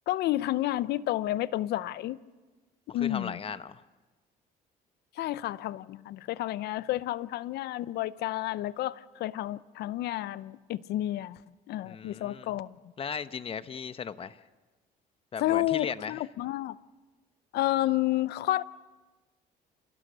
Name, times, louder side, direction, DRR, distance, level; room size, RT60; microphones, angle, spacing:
voice 1, 0.1-2.2 2.9-3.4 5.2-11.4 11.7-12.8 15.4-16.8 17.5-18.6, left 15 dB, 75° left, 0.7 m, -30 dB
voice 2, 2.9-3.8 11.8-12.5 13.0-14.4 15.3-16.2, left 6 dB, 35° left, 0.9 m, -37 dB
28.5 x 17.0 x 6.7 m
cardioid pair, 110°, 17 cm